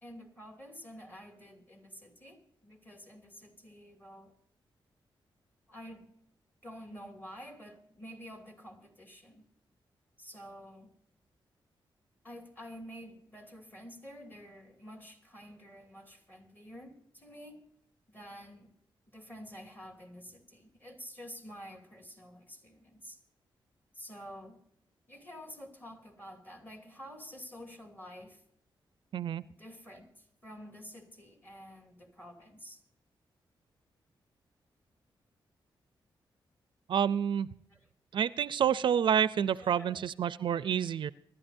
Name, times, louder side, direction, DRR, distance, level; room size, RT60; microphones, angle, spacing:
voice 1, 0.0-4.3 5.7-6.1 6.6-9.4 10.2-10.9 12.2-17.6 18.1-18.7 19.1-23.2 23.9-24.6 25.1-28.4 29.6-32.8 37.7-37.9 39.6-40.0, equal, 20° left, 4 dB, 2.6 m, -49 dB
voice 2, 29.1-29.4 36.9-37.5 38.1-41.1, right 8 dB, 70° right, 17 dB, 0.4 m, -28 dB
24.5 x 12.0 x 2.6 m, 0.72 s
wide cardioid pair, 115°, 9 cm